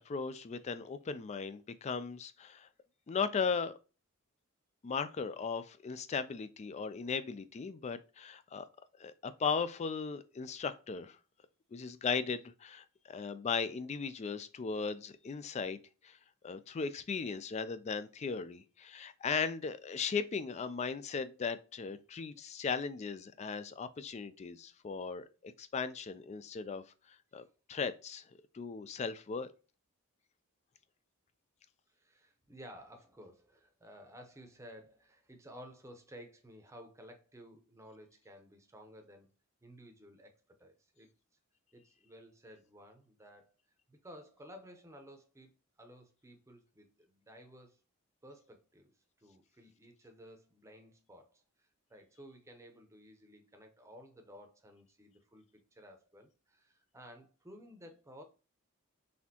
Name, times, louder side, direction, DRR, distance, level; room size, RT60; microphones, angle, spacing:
voice 1, 0.1-2.7 3.1-3.7 4.8-8.7 9.0-11.2 11.7-15.8 16.0-16.2 16.4-26.8 27.3-27.4 27.7-28.2 28.5-29.5, left 5 dB, 30° left, 0.3 m, -37 dB
voice 2, 31.9-39.3 39.6-40.3 40.6-41.1 41.7-43.6 43.9-45.5 45.8-47.8 48.2-48.9 49.2-55.4 55.7-58.2, equal, 15° right, 0.7 m, -55 dB
4.2 x 3.5 x 2.7 m
head